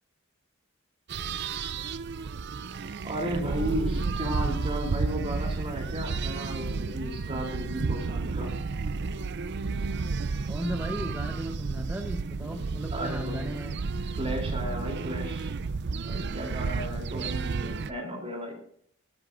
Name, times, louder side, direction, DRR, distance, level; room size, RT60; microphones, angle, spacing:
sound 1, 1.1-17.9, right 4 dB, 55° right, 0.5 m, -32 dB
voice 1, 3.0-8.6 12.9-13.5 14.1-15.5 16.0-18.5, equal, 30° right, 0 dB, 3.4 m, -34 dB
voice 2, 10.5-13.8 17.1-17.4, equal, 10° right, 3 dB, 0.9 m, -36 dB
19.5 x 13.5 x 2.6 m, 0.64 s
head